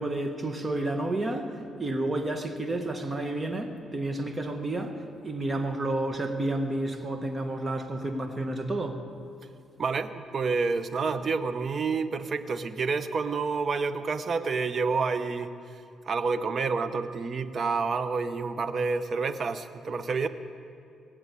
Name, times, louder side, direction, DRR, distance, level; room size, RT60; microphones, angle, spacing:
voice 1, 0.0-9.0, right 2 dB, 25° right, 6 dB, 1.5 m, -31 dB
voice 2, 9.8-20.3, right 4 dB, 45° right, 12 dB, 0.8 m, -29 dB
21.5 x 7.9 x 8.4 m, 2.5 s
cardioid pair, 90°, 0 cm